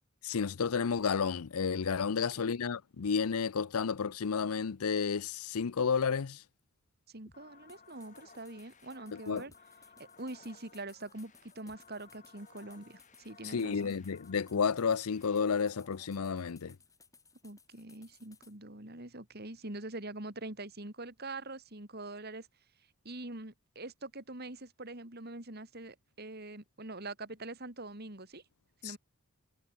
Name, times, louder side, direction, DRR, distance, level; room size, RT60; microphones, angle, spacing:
voice 1, 0.2-6.4 9.1-9.4 13.5-16.7 28.8-29.0, left 6 dB, 85° left, 0.6 m, -31 dB
voice 2, 2.2-2.5 7.1-9.5 10.0-13.9 17.4-22.5 23.0-28.4 28.8-29.0, right 2 dB, 45° right, 3.1 m, -44 dB
sound 1, 7.3-16.1, left 4 dB, 35° left, 4.3 m, -59 dB
sound 2, 7.7-18.6, left 5 dB, 15° left, 4.1 m, -63 dB
head